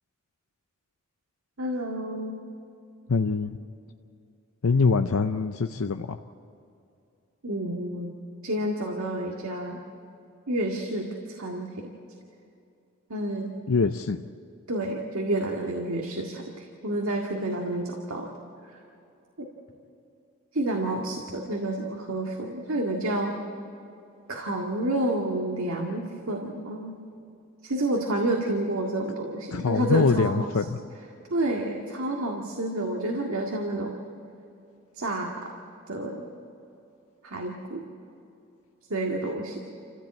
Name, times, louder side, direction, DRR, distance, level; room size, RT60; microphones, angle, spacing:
voice 1, 1.6-2.4 7.4-8.1 8.4-9.8 10.5-11.8 13.1-13.5 14.7-18.3 19.4-19.5 20.5-23.3 24.3-26.9 27.6-30.5 31.3-33.9 35.0-35.5 35.9-36.3 37.2-37.8 38.9-39.6, right 1 dB, 80° right, 0 dB, 2.0 m, -29 dB
voice 2, 3.1-3.6 4.6-6.2 13.7-14.2 29.5-30.7, left 4 dB, 90° left, 7 dB, 0.6 m, -24 dB
28.0 x 15.5 x 8.7 m, 2.7 s
head